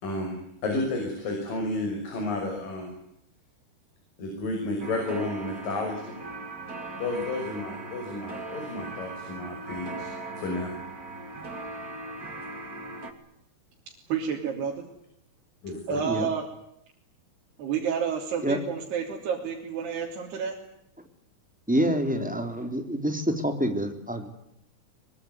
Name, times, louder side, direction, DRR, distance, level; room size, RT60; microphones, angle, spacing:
voice 1, 0.0-2.9 4.2-6.2 7.0-10.1 10.4-10.7 15.6-16.0, left 2 dB, 60° left, 2 dB, 7.6 m, -32 dB
sound 1, 4.8-13.1, right 2 dB, 25° right, 2.6 m, -39 dB
voice 2, 13.9-14.7 15.9-16.5 17.6-20.6, right 7 dB, 85° right, -1 dB, 5.3 m, -30 dB
voice 3, 21.7-24.3, equal, ahead, 6 dB, 3.0 m, -27 dB
24.5 x 23.0 x 9.6 m, 0.76 s
omnidirectional pair, 4.6 m